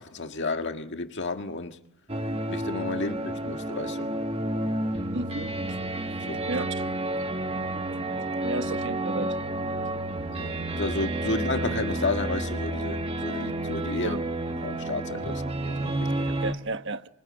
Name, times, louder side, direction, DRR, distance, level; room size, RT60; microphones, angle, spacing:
voice 1, 0.0-1.8 2.5-4.1 6.2-6.5 10.3-14.2 14.5-16.4, left 3 dB, 55° left, 1.8 m, -32 dB
sound 1, 2.1-16.5, right 1 dB, 25° right, 1.3 m, -30 dB
voice 2, 5.1-5.6 6.5-6.9 8.4-9.3 14.0-14.2 16.4-17.1, right 3 dB, 55° right, 1.3 m, -32 dB
27.0 x 24.0 x 8.7 m
head